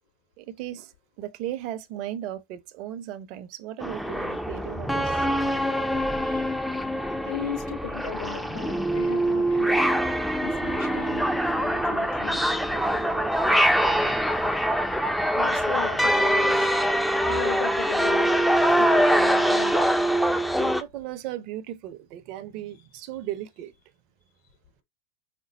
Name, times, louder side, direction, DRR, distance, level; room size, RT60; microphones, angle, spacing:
voice 1, 0.4-5.3 12.7-14.2 20.6-23.7, right 12 dB, 55° right, 0.7 m, -37 dB
sound 1, 3.8-20.8, equal, ahead, 0.6 m, -24 dB
voice 2, 7.2-9.8 10.4-12.4 15.3-16.8 17.2-18.4 18.7-19.9, left 8 dB, 65° left, 3.3 m, -36 dB
5.2 x 2.0 x 4.2 m
hypercardioid pair, 90°, 0 cm